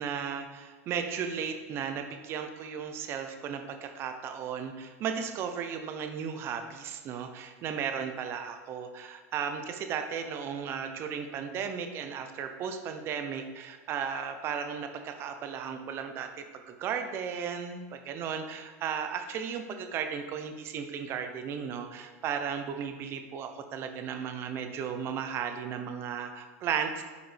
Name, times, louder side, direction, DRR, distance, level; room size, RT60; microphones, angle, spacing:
voice 1, 0.0-27.0, right 7 dB, 30° right, 7 dB, 0.6 m, -35 dB
9.1 x 5.1 x 3.3 m, 1.3 s
supercardioid pair, 155°, 8 cm